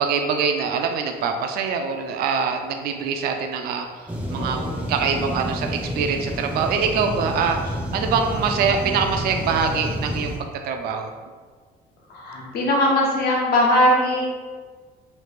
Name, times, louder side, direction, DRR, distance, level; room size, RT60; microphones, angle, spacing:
voice 1, 0.0-3.9 4.3-4.6 4.9-11.1, right 6 dB, 65° right, 4 dB, 0.4 m, -24 dB
sound 1, 4.1-10.4, equal, 5° right, 0.5 m, -29 dB
voice 2, 4.4-4.8 12.1-14.3, left 1 dB, 65° left, -3 dB, 0.9 m, -20 dB
3.2 x 2.3 x 3.3 m, 1.5 s
cardioid pair, 110°, 17 cm